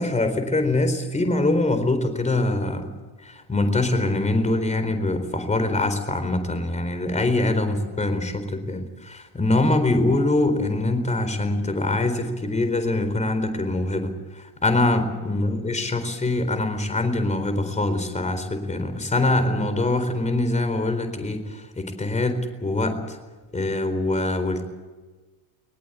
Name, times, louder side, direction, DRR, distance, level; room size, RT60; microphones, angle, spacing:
voice 1, 0.0-2.9 3.2-23.2 23.5-24.7, left 2 dB, 15° left, 8 dB, 4.2 m, -24 dB
21.0 x 20.5 x 8.3 m, 1.3 s
cardioid pair, 135°, 46 cm